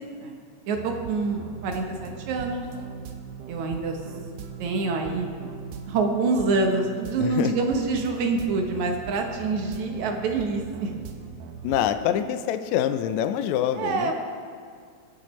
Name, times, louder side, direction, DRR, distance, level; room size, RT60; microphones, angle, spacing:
voice 1, 0.7-2.7 3.5-4.0 4.6-5.3 5.9-10.9 11.2-11.3 13.8-14.1, right 3 dB, 70° right, 3 dB, 2.3 m, -26 dB
sound 1, 0.7-11.9, right 7 dB, 90° right, 2.3 m, -40 dB
voice 2, 7.2-7.5 11.6-14.1, left 10 dB, 80° left, 9 dB, 1.7 m, -25 dB
22.5 x 7.6 x 3.1 m, 2.1 s
omnidirectional pair, 3.6 m